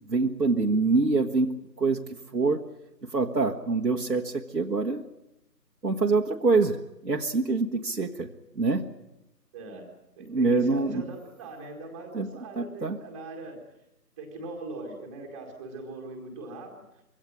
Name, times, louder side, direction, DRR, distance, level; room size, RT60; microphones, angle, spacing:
voice 1, 0.1-2.0 2.3-2.7 3.1-5.0 5.8-8.3 8.6-8.9 10.3-11.0 12.1-12.3 12.6-13.0, right 3 dB, 90° right, 1 dB, 1.8 m, -25 dB
voice 2, 9.5-9.8 10.2-13.6 14.2-16.7, right 2 dB, 10° right, 0 dB, 1.9 m, -41 dB
23.0 x 16.5 x 9.9 m, 0.87 s
figure-of-eight pair, 160°, 48 cm